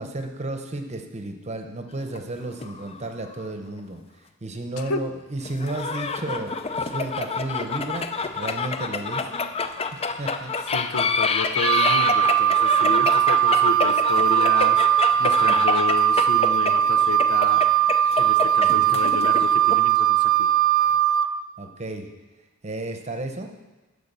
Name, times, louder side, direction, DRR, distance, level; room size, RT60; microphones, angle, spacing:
voice 1, 0.0-4.0 4.4-6.5 6.8-8.1 8.3-9.5 10.2-10.5 15.4-15.8 18.6-19.0 21.6-22.1 22.6-23.5, right 2 dB, 30° right, 6 dB, 0.8 m, -33 dB
sound 1, 2.0-3.5 3.8-3.9 5.5-19.8, left 4 dB, 25° left, 0.4 m, -27 dB
voice 2, 10.7-17.7 18.2-20.5, left 4 dB, 85° left, 9 dB, 0.7 m, -31 dB
Wind instrument woodwind instrument, 11.6-21.3, right 11 dB, 60° right, 0.4 m, -19 dB
11.0 x 5.2 x 6.7 m, 1.2 s
head